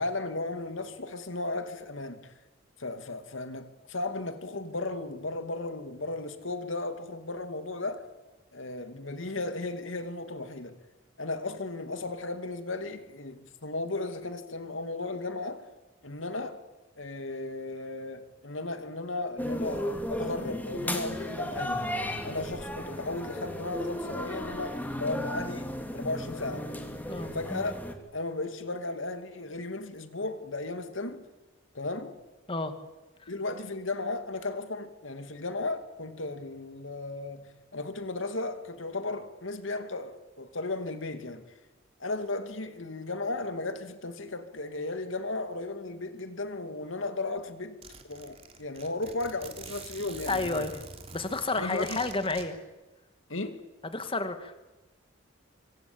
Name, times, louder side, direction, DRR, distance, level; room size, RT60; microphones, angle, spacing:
voice 1, 0.0-2.3 2.8-8.1 8.5-10.8 11.2-15.7 16.0-16.6 17.0-21.9 22.2-26.7 27.3-27.7 28.1-31.2 31.7-32.2 33.3-41.4 42.0-47.8 48.0-50.7 51.5-52.0 53.3-53.6, left 2 dB, 75° left, 2.6 m, -35 dB
sound 1, 19.4-27.9, equal, 10° left, 2.9 m, -35 dB
Zipper (clothing), 47.0-47.1 47.4-47.5 47.8-52.4, right 4 dB, 30° right, 3.3 m, -45 dB
voice 2, 50.3-50.8 51.1-52.6 53.9-54.6, left 3 dB, 25° left, 2.3 m, -30 dB
25.5 x 25.5 x 8.8 m
head